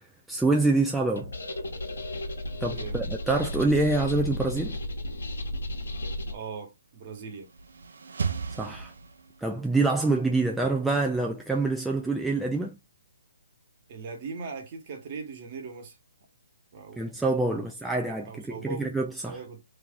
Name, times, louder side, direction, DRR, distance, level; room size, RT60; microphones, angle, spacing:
voice 1, 0.3-1.3 2.6-4.8 8.5-8.9 9.4-12.7 17.0-19.4, right 3 dB, 5° right, 0.3 m, -26 dB
sound 1, 1.2-6.3, left 1 dB, 80° left, 1.2 m, -34 dB
voice 2, 2.7-3.1 6.3-7.5 13.9-16.0 16.7-17.1 17.5-17.7 18.2-19.0 19.2-19.6, right 4 dB, 40° right, 1.3 m, -39 dB
sound 2, 7.2-9.6, right 5 dB, 75° right, 0.6 m, -35 dB
3.0 x 2.6 x 3.6 m
hypercardioid pair, 150°, 0 cm